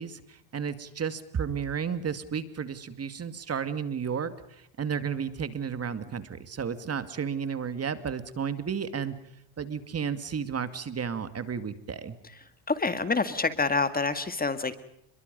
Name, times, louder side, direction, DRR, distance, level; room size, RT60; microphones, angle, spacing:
voice 1, 0.0-9.1 9.6-12.2, right 7 dB, 35° right, 11 dB, 2.4 m, -33 dB
voice 2, 12.7-14.8, left 4 dB, 20° left, 11 dB, 1.9 m, -27 dB
29.0 x 22.5 x 5.5 m, 0.76 s
supercardioid pair, 90°, 44 cm